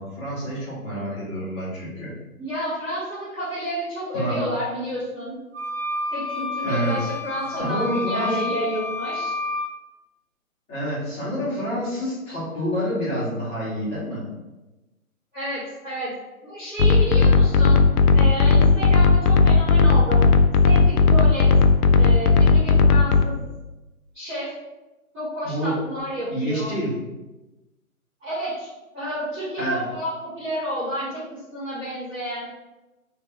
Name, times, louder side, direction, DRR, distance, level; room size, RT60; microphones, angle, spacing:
voice 1, 0.0-2.1 4.1-4.4 6.6-7.1 7.5-8.4 10.7-14.2 25.4-25.7 26.3-26.9 29.6-29.8, equal, 15° left, -10 dB, 1.4 m, -28 dB
voice 2, 2.4-5.4 6.1-9.3 15.3-16.1 16.4-17.8 18.1-20.2 20.6-21.5 22.0-23.3 24.1-24.5 25.1-26.7 28.2-32.4, equal, 10° right, -16 dB, 0.9 m, -30 dB
sound 1, 5.5-9.7, left 2 dB, 45° right, 0.7 m, -30 dB
sound 2, 16.8-23.2, left 4 dB, 85° left, 0.6 m, -16 dB
3.4 x 3.1 x 4.4 m, 1.1 s
figure-of-eight pair, 150°, 44 cm